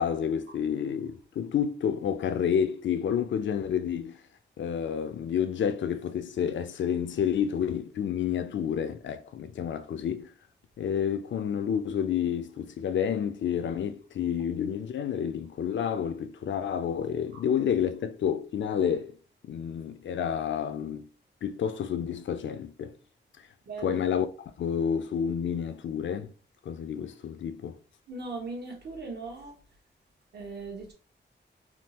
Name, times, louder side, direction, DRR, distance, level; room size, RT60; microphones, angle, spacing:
voice 1, 0.0-4.2 4.6-10.3 10.8-19.2 19.5-21.1 21.4-23.0 23.8-24.3 24.6-26.3 26.7-27.8, left 8 dB, 75° left, 0.4 m, -29 dB
voice 2, 28.1-29.5 30.3-30.9, right 3 dB, 60° right, 1.0 m, -38 dB
3.5 x 2.4 x 2.8 m
wide cardioid pair, 120°, 20 cm